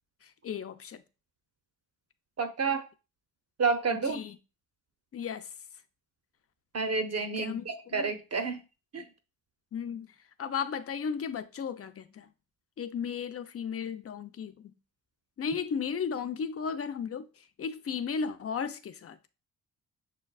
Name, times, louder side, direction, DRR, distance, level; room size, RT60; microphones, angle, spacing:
voice 1, 0.2-1.0 3.9-4.4 5.1-5.5 7.4-7.7 7.9-8.1 9.7-10.1 10.4-12.3 12.8-14.7 15.4-19.3, left 6 dB, 30° left, 0.5 m, -35 dB
voice 2, 2.4-2.8 3.6-4.2 6.7-8.6 8.9-9.1, right 4 dB, 35° right, 0.6 m, -29 dB
6.4 x 2.2 x 2.3 m
hypercardioid pair, 40°, 45 cm